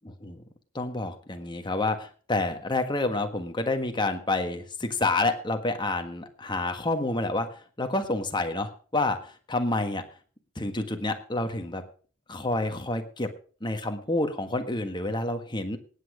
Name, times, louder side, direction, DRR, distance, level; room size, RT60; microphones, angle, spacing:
voice 1, 0.0-0.4 0.7-7.5 7.8-10.0 10.5-11.8 12.3-13.3 13.6-15.8, left 2 dB, 25° left, 6 dB, 1.5 m, -28 dB
18.0 x 8.7 x 5.0 m, 0.41 s
head